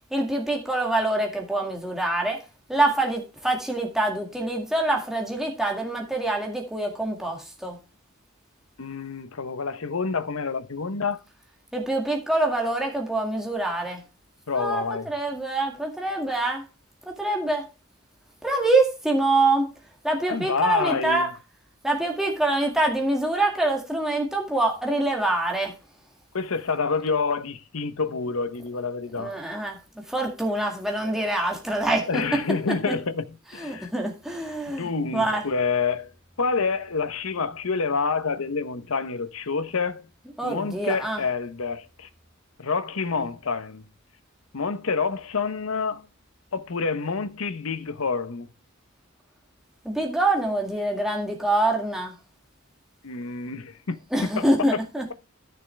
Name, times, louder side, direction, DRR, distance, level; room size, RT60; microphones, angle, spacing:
voice 1, 0.1-2.4 2.7-7.8 11.7-14.0 14.5-16.6 17.2-17.7 18.4-19.7 20.0-21.3 21.8-25.7 29.2-29.8 30.1-32.4 32.9-33.0 33.6-35.4 40.4-41.2 49.9-52.1 54.1-55.0, right 2 dB, ahead, 2.0 m, -25 dB
voice 2, 8.8-11.2 14.5-15.1 20.3-21.3 26.3-29.4 32.1-33.9 34.7-36.1 36.4-40.1 40.4-42.1 42.6-43.8 44.5-46.1 46.5-48.5 53.0-54.7, left 4 dB, 75° left, 0.9 m, -28 dB
13.5 x 6.7 x 3.3 m
head